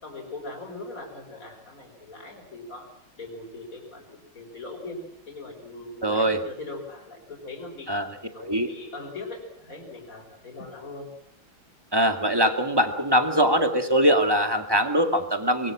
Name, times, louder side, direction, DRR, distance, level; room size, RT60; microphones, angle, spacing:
voice 1, 0.0-2.9 3.2-4.1 4.3-5.0 5.3-7.9 8.3-11.1, left 3 dB, 40° left, 2 dB, 5.9 m, -40 dB
voice 2, 6.0-6.4 7.9-8.1 8.4-8.7 11.9-15.7, equal, 10° right, 6 dB, 2.1 m, -22 dB
24.0 x 22.5 x 7.6 m, 0.72 s
omnidirectional pair, 2.2 m